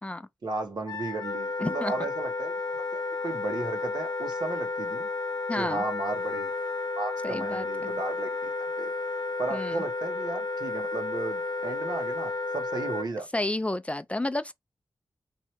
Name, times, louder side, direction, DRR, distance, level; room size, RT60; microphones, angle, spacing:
voice 1, 0.4-2.5 2.9-5.1 5.5-6.5 7.0-8.9 9.4-13.4, right 3 dB, 75° right, 1.2 m, -35 dB
Wind instrument woodwind instrument, 0.9-13.1, left 3 dB, 70° left, 0.7 m, -32 dB
voice 2, 1.6-1.9 5.5-5.8 7.2-7.9 9.5-9.8 13.3-14.5, left 1 dB, 15° left, 0.3 m, -31 dB
3.2 x 2.7 x 4.3 m
wide cardioid pair, 80°, 7 cm